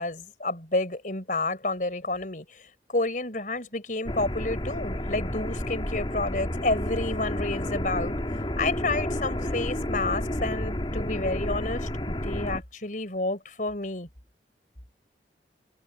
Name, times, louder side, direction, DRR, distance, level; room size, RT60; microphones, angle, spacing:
voice 1, 0.0-2.6 2.9-8.2 8.6-14.1, left 2 dB, 50° left, 4.3 m, -30 dB
sound 1, 4.1-12.6, left 1 dB, 30° left, 2.1 m, -31 dB
head